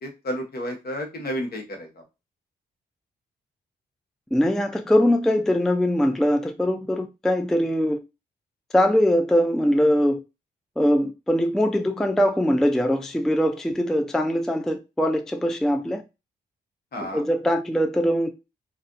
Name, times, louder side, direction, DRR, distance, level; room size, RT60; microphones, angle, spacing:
voice 1, 0.0-1.9 16.9-17.2, equal, 55° left, 1.0 m, -31 dB
voice 2, 4.3-8.0 8.7-10.2 10.8-16.0 17.0-18.3, equal, ahead, 0.3 m, -22 dB
2.4 x 2.2 x 2.5 m
cardioid pair, 55°, 19 cm